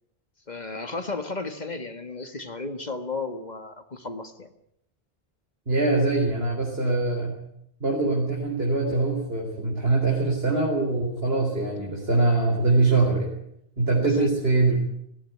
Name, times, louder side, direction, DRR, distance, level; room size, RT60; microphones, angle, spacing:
voice 1, 0.5-4.5 14.0-14.3, left 3 dB, 45° left, 8 dB, 1.8 m, -33 dB
voice 2, 5.7-7.4 7.8-13.3 13.8-14.8, right 3 dB, 75° right, -2 dB, 4.4 m, -23 dB
19.5 x 17.0 x 9.6 m, 0.76 s
omnidirectional pair, 1.0 m